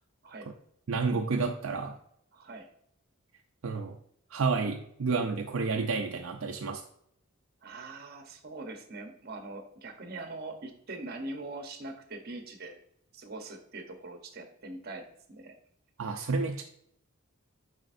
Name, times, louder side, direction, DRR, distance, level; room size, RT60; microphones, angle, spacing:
voice 1, 0.9-2.0 3.6-4.0 4.3-6.8 16.0-16.6, right 4 dB, 65° right, 3 dB, 0.5 m, -30 dB
voice 2, 2.3-2.7 7.6-12.8 13.1-15.5, right 2 dB, 45° right, 5 dB, 0.9 m, -42 dB
7.6 x 5.1 x 2.6 m, 0.71 s
head